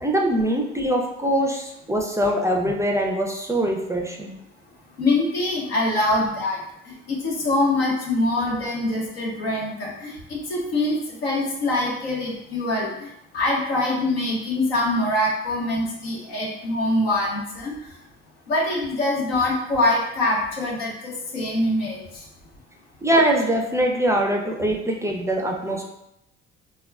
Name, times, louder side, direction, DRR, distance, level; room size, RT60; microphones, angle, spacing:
voice 1, 0.0-4.3 23.0-25.8, right 1 dB, 10° right, 1 dB, 0.4 m, -23 dB
voice 2, 5.0-6.6 7.1-13.1 13.3-17.8 18.5-22.2, left 2 dB, 85° left, -3 dB, 0.7 m, -24 dB
3.4 x 2.1 x 2.3 m, 0.83 s
hypercardioid pair, 50°, 30 cm